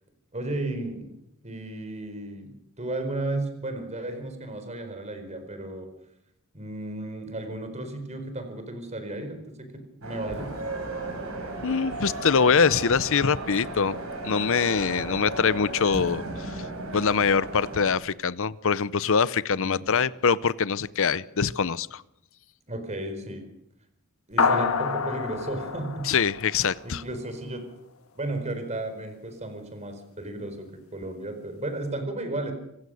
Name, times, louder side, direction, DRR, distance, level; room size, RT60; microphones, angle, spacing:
voice 1, 0.3-1.1 1.4-2.5 2.8-5.9 6.5-9.7 10.0-10.5 19.5-19.9 22.7-23.4 24.3-26.0 26.8-27.6 28.1-32.5, right 2 dB, 30° right, 7 dB, 4.5 m, -34 dB
sound 1, 10.0-17.9, right 2 dB, 75° right, 6.6 m, -35 dB
voice 2, 11.6-14.0 14.2-16.6 16.9-22.0 26.0-27.0, left 6 dB, 65° left, 18 dB, 0.7 m, -24 dB
sound 2, 24.4-27.1, left 5 dB, 80° left, 1.6 m, -27 dB
26.5 x 16.0 x 6.4 m, 0.78 s
head